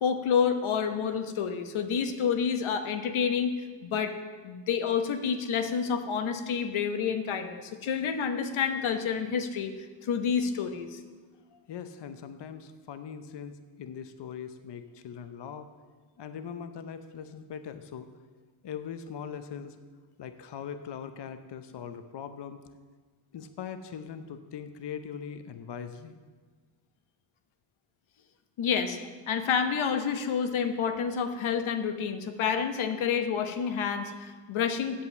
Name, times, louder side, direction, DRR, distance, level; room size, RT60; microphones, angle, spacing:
voice 1, 0.0-3.6 3.8-4.1 4.4-9.7 10.0-11.0 28.6-29.0 29.3-35.0, left 7 dB, 75° left, 7 dB, 1.1 m, -29 dB
voice 2, 11.5-15.7 16.2-18.1 18.6-19.8 20.2-22.6 23.3-26.2, left 7 dB, 55° left, 9 dB, 0.8 m, -41 dB
8.6 x 7.5 x 7.2 m, 1.5 s
cardioid pair, 80°, 49 cm